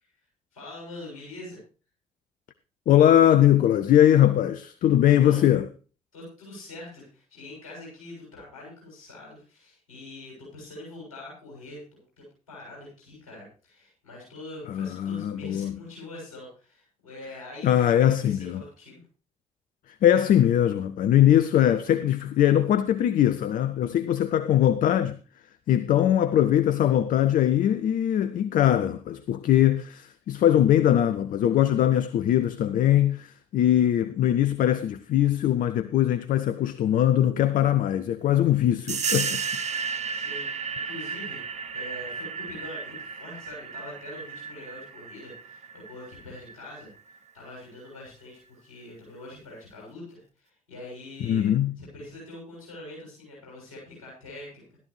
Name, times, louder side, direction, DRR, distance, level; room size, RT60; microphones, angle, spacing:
voice 1, 0.5-1.6 5.2-5.5 6.1-19.0 40.1-46.9 47.3-51.5 51.8-54.7, left 2 dB, 75° left, 7.0 m, -44 dB
voice 2, 2.9-5.7 14.7-15.8 17.6-18.6 20.0-25.2 25.7-39.4 51.2-51.7, left 11 dB, 50° left, 0.7 m, -21 dB
sound 1, 38.9-47.2, right 6 dB, 40° right, 0.8 m, -33 dB
15.0 x 12.5 x 3.2 m
figure-of-eight pair, 40°, 18 cm